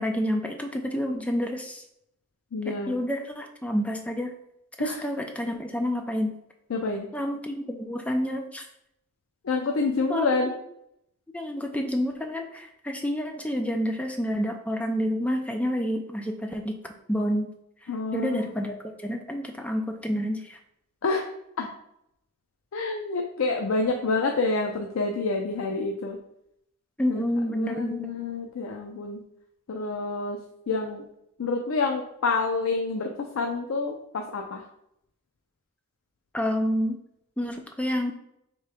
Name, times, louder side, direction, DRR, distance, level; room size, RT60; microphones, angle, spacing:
voice 1, 0.0-1.8 2.6-4.3 4.8-6.4 7.1-8.7 10.1-10.3 11.3-17.5 17.8-20.6 27.0-28.1 36.3-37.0 37.4-38.1, equal, 5° left, 4 dB, 0.3 m, -29 dB
voice 2, 2.5-3.0 4.8-5.0 6.7-7.1 9.4-10.5 17.9-18.5 21.0-21.3 21.6-21.7 22.7-26.2 27.1-27.2 27.5-29.2 29.7-30.4 30.7-31.0 31.4-34.6, left 3 dB, 75° left, 2 dB, 0.4 m, -28 dB
3.3 x 3.0 x 4.7 m, 0.78 s
head